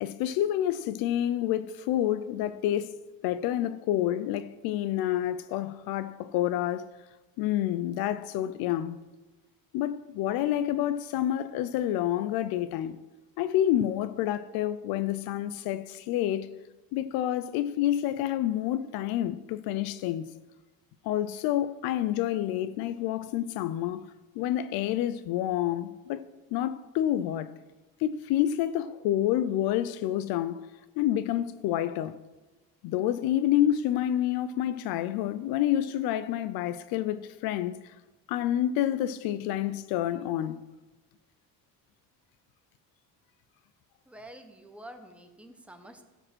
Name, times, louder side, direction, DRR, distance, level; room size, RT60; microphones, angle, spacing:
voice 1, 0.0-3.0 3.2-6.9 7.4-9.0 9.7-13.0 13.4-16.5 16.9-20.3 21.0-24.1 24.4-26.2 26.5-27.5 28.0-30.7 31.0-32.2 32.8-37.9 38.3-40.6, left 12 dB, 85° left, 0.6 m, -28 dB
voice 2, 44.1-46.0, right 1 dB, 5° right, 1.0 m, -48 dB
15.0 x 5.3 x 6.2 m
cardioid pair, 125°, 36 cm